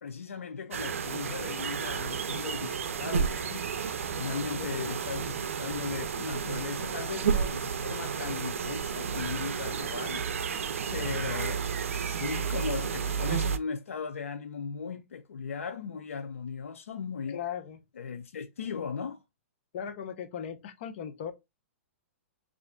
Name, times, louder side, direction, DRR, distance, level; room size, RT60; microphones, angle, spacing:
voice 1, 0.0-3.7 4.1-10.2 10.9-11.6 12.0-17.4 18.0-19.2, left 6 dB, 90° left, 0.4 m, -37 dB
sound 1, 0.7-13.6, right 6 dB, 85° right, 0.4 m, -32 dB
voice 2, 4.6-5.0 17.3-17.8 19.7-21.3, left 8 dB, 55° left, 0.7 m, -38 dB
3.1 x 2.5 x 3.7 m
hypercardioid pair, 130°, 7 cm